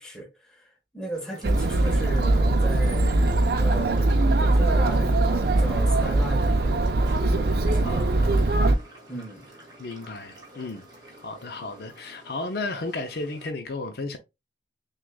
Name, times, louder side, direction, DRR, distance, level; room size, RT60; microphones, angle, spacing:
voice 1, 0.0-8.5 9.1-9.5, right 1 dB, 5° left, 1.1 m, -36 dB
sound 1, 1.1-13.5, right 1 dB, 20° right, 1.3 m, -47 dB
Chatter, 1.4-8.8, right 2 dB, 55° right, 0.5 m, -21 dB
voice 2, 7.8-8.7 9.8-10.9 11.2-14.2, left 3 dB, 55° left, 0.6 m, -34 dB
6.1 x 2.4 x 2.3 m
head